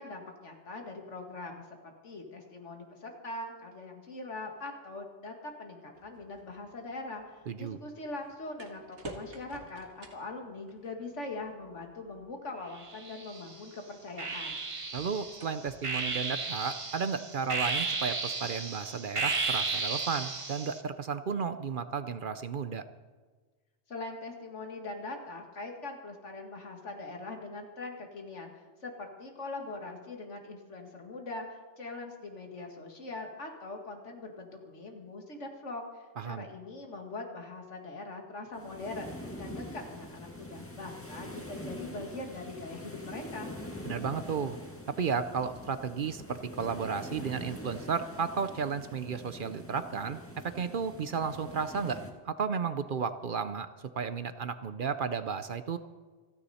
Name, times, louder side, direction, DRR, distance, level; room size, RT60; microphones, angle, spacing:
voice 1, 0.0-14.6 23.9-28.5 28.8-43.5, left 2 dB, 85° left, 3 dB, 2.3 m, -42 dB
sound 1, 5.9-16.9, right 2 dB, 90° right, 2.0 m, -53 dB
voice 2, 7.5-7.8 14.9-22.8 36.2-36.5 43.8-44.6 44.9-50.2 50.4-52.0 52.2-53.7 53.9-55.8, right 6 dB, 55° right, 11 dB, 0.8 m, -33 dB
sound 2, 12.8-13.5 14.2-20.8, right 3 dB, 30° right, 0.9 m, -34 dB
sound 3, 38.5-52.1, left 1 dB, 10° left, 1.8 m, -44 dB
28.0 x 10.0 x 4.2 m, 1.4 s
omnidirectional pair, 1.2 m